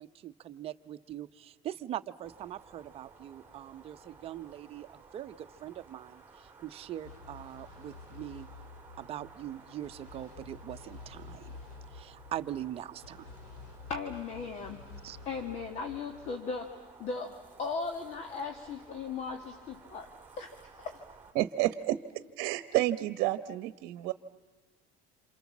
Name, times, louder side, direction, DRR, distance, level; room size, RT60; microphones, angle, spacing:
voice 1, 0.0-8.5 9.0-11.6 11.9-13.3 15.0-15.2, right 12 dB, 35° right, 10 dB, 0.9 m, -42 dB
sound 1, 2.2-21.3, right 4 dB, 10° right, 2.8 m, -56 dB
sound 2, 7.0-16.4, left 4 dB, 75° left, 3.5 m, -50 dB
voice 2, 13.9-14.8 15.3-20.1 20.4-21.0, left 4 dB, 45° left, 6 dB, 1.9 m, -37 dB
voice 3, 21.3-24.1, right 15 dB, 60° right, 12 dB, 1.1 m, -30 dB
28.0 x 28.0 x 7.3 m, 1.2 s
cardioid pair, 165°, 17 cm